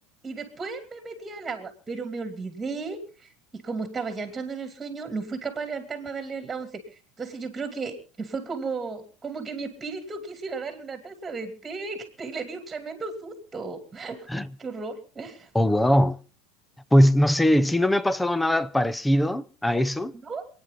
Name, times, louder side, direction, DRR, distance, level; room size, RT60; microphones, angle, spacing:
voice 1, 0.2-6.8 7.2-14.3 14.6-15.5 20.2-20.5, right 4 dB, 15° right, 2.8 m, -34 dB
voice 2, 15.5-16.2 16.9-20.1, equal, 5° left, 0.8 m, -21 dB
27.5 x 9.6 x 3.9 m
supercardioid pair, 115°, 0 cm